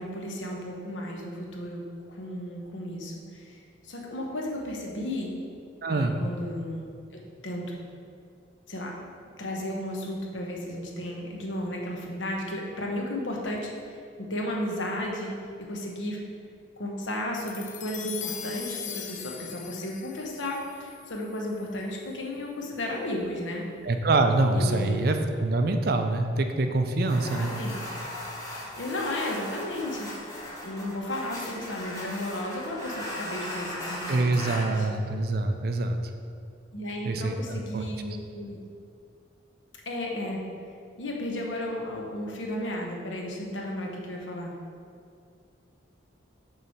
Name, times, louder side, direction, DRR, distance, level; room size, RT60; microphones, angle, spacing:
voice 1, 0.0-1.8 2.1-5.3 5.9-6.9 7.1-7.9 8.7-8.9 9.4-15.3 15.6-16.4 16.8-23.6 24.5-25.1 27.2-27.8 28.8-34.9 36.7-38.6 39.9-40.4 41.0-44.5, left 1 dB, 75° left, -1 dB, 1.0 m, -34 dB
voice 2, 5.8-6.2 23.8-27.5 34.1-36.0 37.1-37.3 37.7-37.8, right 2 dB, 50° right, 6 dB, 0.4 m, -25 dB
sound 1, 17.5-22.0, left 8 dB, 40° left, 0.3 m, -40 dB
sound 2, 27.1-34.7, left 1 dB, 15° left, 1.2 m, -38 dB
6.7 x 3.2 x 5.8 m, 2.4 s
head